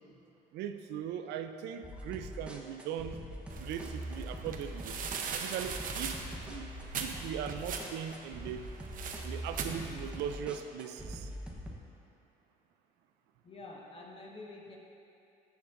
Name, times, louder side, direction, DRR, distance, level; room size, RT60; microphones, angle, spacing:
voice 1, 0.5-3.2 3.6-4.9 5.3-6.7 7.0-8.7 9.2-11.3, right 9 dB, 85° right, 8 dB, 0.5 m, -39 dB
sound 1, 1.8-11.8, equal, 5° right, 0.9 m, -43 dB
sound 2, 3.5-10.4, right 5 dB, 55° right, 0.7 m, -41 dB
voice 2, 13.4-14.8, left 2 dB, 35° left, -2 dB, 1.5 m, -48 dB
13.0 x 7.2 x 2.6 m, 2.7 s
cardioid pair, 110°, 17 cm